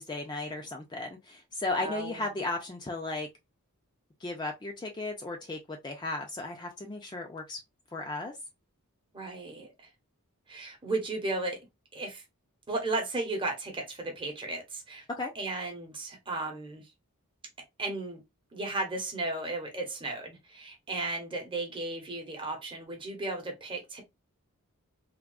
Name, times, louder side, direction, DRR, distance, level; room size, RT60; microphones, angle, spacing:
voice 1, 0.0-3.3 4.2-7.6 7.9-8.3 15.1-15.3, left 2 dB, 20° left, 0.4 m, -35 dB
voice 2, 1.8-2.4 9.1-9.7 10.5-11.6 11.9-12.2 12.7-15.0 15.3-16.8 17.8-18.2 18.5-24.0, right 2 dB, 25° right, 0.9 m, -35 dB
3.5 x 2.3 x 2.3 m
head